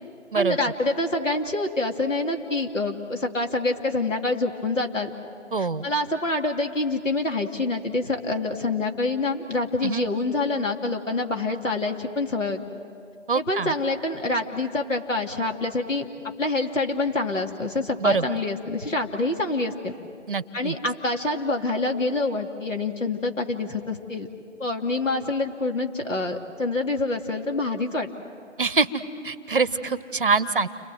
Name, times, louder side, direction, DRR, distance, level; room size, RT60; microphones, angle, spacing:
voice 1, 0.3-5.1 5.6-12.6 13.3-16.1 16.4-19.9 20.5-24.3 24.6-28.1, left 2 dB, 75° left, 3 dB, 2.8 m, -26 dB
voice 2, 5.5-5.9 9.8-10.0 13.3-13.7 18.0-18.2 20.3-20.8 28.6-30.7, right 4 dB, 45° right, 16 dB, 0.8 m, -24 dB
30.0 x 25.0 x 7.7 m, 2.4 s
figure-of-eight pair, 160°, 38 cm